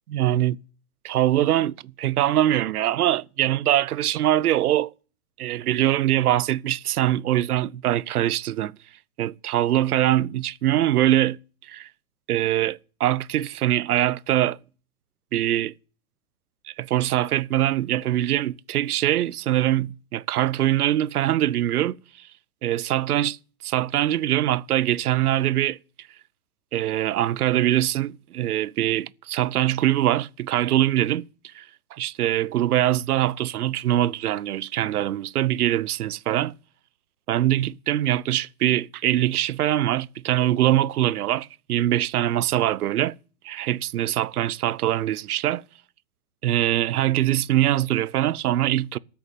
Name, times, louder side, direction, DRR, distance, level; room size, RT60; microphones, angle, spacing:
voice 1, 0.1-0.6 1.0-4.9 5.4-8.7 9.2-11.9 12.3-14.6 15.3-15.7 16.7-22.0 22.6-23.4 23.6-25.8 26.7-31.6 31.9-36.5 37.3-43.1 43.4-45.6 46.4-49.0, right 13 dB, 80° right, 0.8 m, -23 dB
13.5 x 7.1 x 9.1 m
hypercardioid pair, 175°, 44 cm